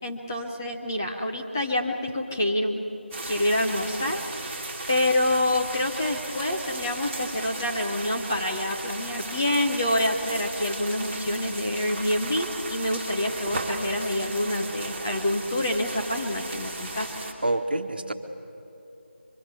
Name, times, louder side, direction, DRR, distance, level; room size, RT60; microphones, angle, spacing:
voice 1, 0.0-2.8 3.3-17.1, left 1 dB, 15° left, 0 dB, 0.8 m, -27 dB
sound 1, 3.1-17.3, right 2 dB, 10° right, 1.3 m, -36 dB
voice 2, 17.4-18.1, right 2 dB, 55° right, 7 dB, 1.4 m, -26 dB
24.0 x 23.0 x 6.9 m, 2.7 s
figure-of-eight pair, 175°, 6 cm